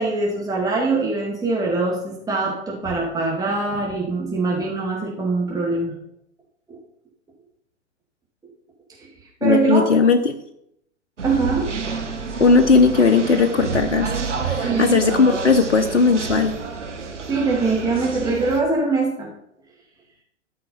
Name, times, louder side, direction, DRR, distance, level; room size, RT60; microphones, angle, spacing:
voice 1, 0.0-5.9 6.7-6.8 9.0-9.1 9.4-9.9 11.2-11.7 14.6-15.0 17.0-19.3, right 3 dB, 10° right, -3 dB, 2.7 m, -23 dB
voice 2, 9.4-10.4 12.4-16.5, left 4 dB, 85° left, 7 dB, 0.9 m, -17 dB
sound 1, 11.2-18.6, right 5 dB, 85° right, 1.4 m, -28 dB
13.0 x 5.8 x 5.7 m, 0.75 s
figure-of-eight pair, 105°, 35 cm